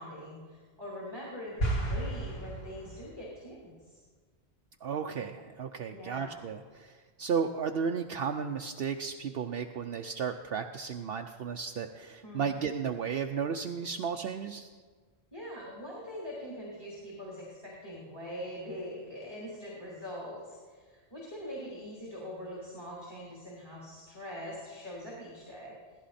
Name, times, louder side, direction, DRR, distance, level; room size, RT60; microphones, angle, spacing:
voice 1, 0.0-4.0 5.9-6.4 12.2-12.6 15.3-25.7, equal, 20° left, -6 dB, 3.1 m, -43 dB
sound 1, 1.6-3.2, right 1 dB, 65° left, 2.4 m, -33 dB
voice 2, 4.8-14.7, right 6 dB, 65° right, 5 dB, 0.8 m, -34 dB
17.0 x 14.5 x 4.2 m, 1.5 s
omnidirectional pair, 1.1 m